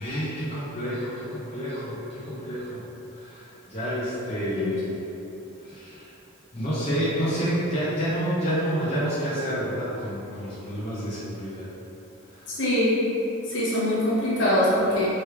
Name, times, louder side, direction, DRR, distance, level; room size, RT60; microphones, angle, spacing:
voice 1, 0.0-2.8 3.2-4.9 5.6-6.1 6.5-11.7 12.3-12.4, equal, 30° left, -11 dB, 0.8 m, -29 dB
voice 2, 12.5-13.0 13.5-15.1, left 1 dB, 60° left, -8 dB, 1.1 m, -23 dB
4.6 x 3.2 x 3.4 m, 2.9 s
head